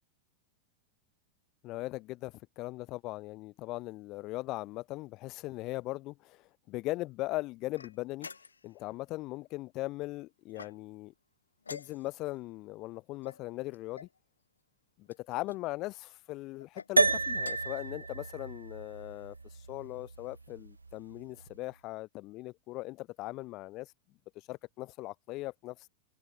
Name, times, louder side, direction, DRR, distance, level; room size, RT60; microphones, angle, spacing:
voice 1, 1.6-8.3 8.6-11.1 11.7-14.1 15.0-23.9 24.5-25.9, left 19 dB, 40° left, 1.7 m, -39 dB
sound 1, 7.7-8.8 10.5-11.1 11.6-12.3 13.2-14.2 15.1-15.6 16.6-16.9 17.4-17.8, left 5 dB, 75° left, 3.9 m, -49 dB
sound 2, 17.0-21.5, right 3 dB, 80° right, 0.9 m, -32 dB
figure-of-eight pair, 90°, 0 cm